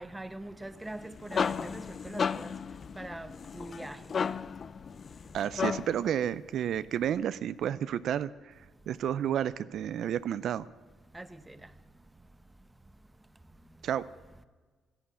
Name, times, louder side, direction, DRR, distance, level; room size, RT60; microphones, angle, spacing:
voice 1, 0.0-2.5 3.0-4.0 11.1-11.6, right 1 dB, 10° right, 0.8 m, -42 dB
sound 1, 0.9-6.1, left 6 dB, 45° left, 0.4 m, -34 dB
voice 2, 5.3-8.5 8.9-10.7 13.8-14.0, right 10 dB, 70° right, 0.4 m, -31 dB
12.0 x 11.0 x 8.6 m
cardioid pair, 90°, 0 cm